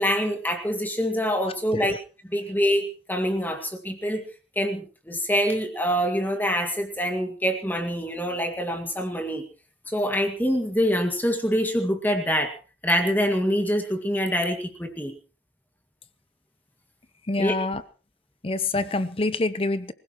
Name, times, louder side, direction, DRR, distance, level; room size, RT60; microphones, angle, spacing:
voice 1, 0.0-1.9 2.2-4.2 4.6-9.4 9.9-12.5 12.8-15.2 17.4-17.5, equal, 10° left, 2.0 m, -25 dB
voice 2, 17.3-17.8 18.4-19.9, left 2 dB, 30° left, 0.8 m, -26 dB
25.0 x 16.5 x 3.1 m
head